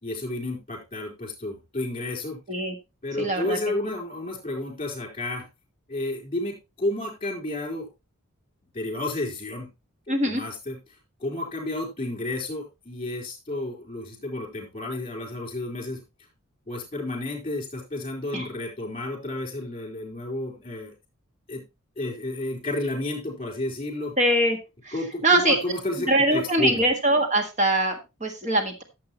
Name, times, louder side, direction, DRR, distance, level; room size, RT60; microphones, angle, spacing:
voice 1, 0.0-2.4 3.0-5.5 5.9-7.9 8.7-9.7 10.2-10.8 11.2-16.0 16.7-20.9 21.5-21.6 22.0-24.1 24.9-26.8, left 2 dB, 25° left, -2 dB, 4.3 m, -31 dB
voice 2, 3.2-3.6 10.1-10.4 18.3-18.5 24.2-24.6 24.8-24.9 25.2-25.6 26.1-28.8, right 1 dB, 30° right, 5 dB, 1.6 m, -22 dB
13.5 x 7.6 x 3.0 m, 0.26 s
head